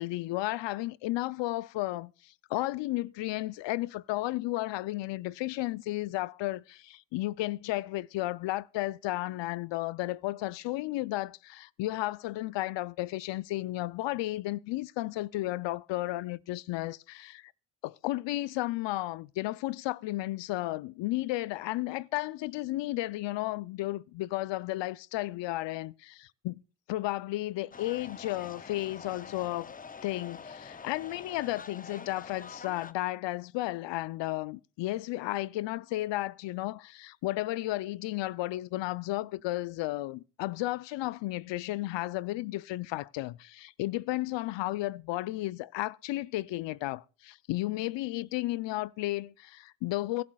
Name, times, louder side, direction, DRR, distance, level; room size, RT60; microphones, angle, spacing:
voice 1, 0.0-17.5 17.8-26.6 26.9-29.7 30.0-50.2, left 17 dB, 65° left, 0.6 m, -33 dB
sound 1, 27.7-32.9, left 5 dB, 20° left, 0.5 m, -46 dB
25.0 x 12.0 x 2.3 m
supercardioid pair, 60°, 48 cm